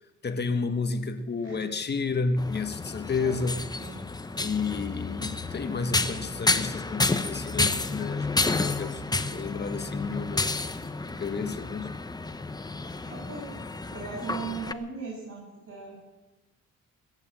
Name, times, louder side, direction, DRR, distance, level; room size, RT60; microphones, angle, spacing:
voice 1, 0.2-3.7 4.4-10.5 11.2-12.0, left 4 dB, 35° left, 8 dB, 1.4 m, -31 dB
sound 1, 2.4-14.7, left 3 dB, 15° left, 0.8 m, -30 dB
voice 2, 12.9-13.5 13.9-16.0, right 4 dB, 50° right, -6 dB, 6.9 m, -38 dB
21.0 x 8.2 x 7.9 m, 1.1 s
cardioid pair, 90°, 30 cm